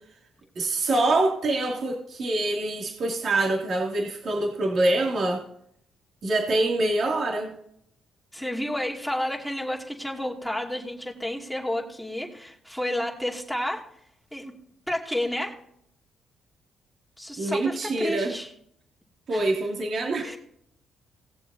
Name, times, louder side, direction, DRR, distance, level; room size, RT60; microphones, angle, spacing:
voice 1, 0.6-5.4 6.2-7.5 17.4-18.3 19.3-20.4, right 2 dB, 55° right, -1 dB, 2.7 m, -25 dB
voice 2, 8.3-14.0 14.3-14.5 14.9-15.6 17.2-18.5 19.3-19.5 20.2-20.4, left 1 dB, ahead, -1 dB, 2.6 m, -31 dB
19.0 x 7.2 x 2.8 m, 0.70 s
cardioid pair, 90°, 0 cm